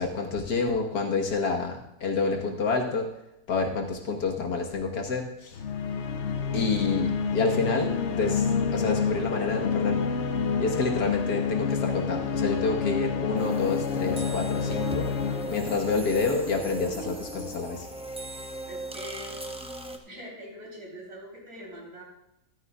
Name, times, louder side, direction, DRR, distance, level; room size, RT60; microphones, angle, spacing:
voice 1, 0.0-3.1 3.5-5.6 6.5-8.5 8.7-10.1 10.6-15.1 15.5-17.9, left 4 dB, 90° left, 2 dB, 1.9 m, -28 dB
sound 1, 5.5-17.1, left 6 dB, 60° left, 0.8 m, -29 dB
sound 2, 13.4-20.0, right 2 dB, 10° right, 0.4 m, -38 dB
voice 2, 18.6-19.4 20.0-22.0, equal, 80° right, -3 dB, 4.2 m, -43 dB
13.5 x 13.0 x 2.3 m, 0.86 s
omnidirectional pair, 1.7 m